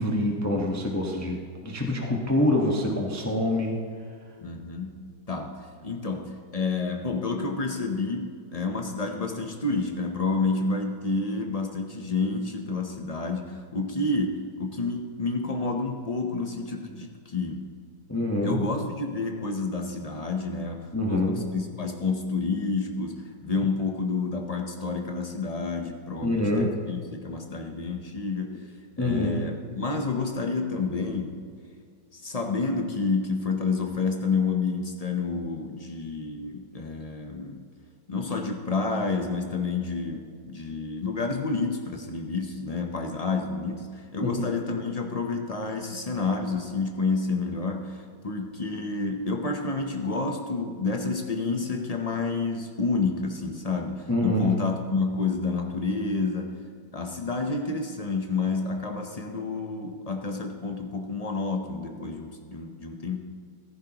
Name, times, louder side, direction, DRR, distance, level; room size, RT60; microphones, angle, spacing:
voice 1, 0.0-1.4 1.6-3.8 18.1-18.6 20.9-21.4 26.2-26.7 29.0-29.4 44.2-44.4 54.1-54.5, left 1 dB, 10° left, 0 dB, 0.9 m, -25 dB
voice 2, 4.4-17.7 18.4-28.7 29.0-31.4 32.1-37.6 38.1-56.6 56.9-63.2, left 3 dB, 55° left, 3 dB, 0.4 m, -29 dB
15.5 x 14.5 x 3.0 m, 2.2 s
omnidirectional pair, 2.0 m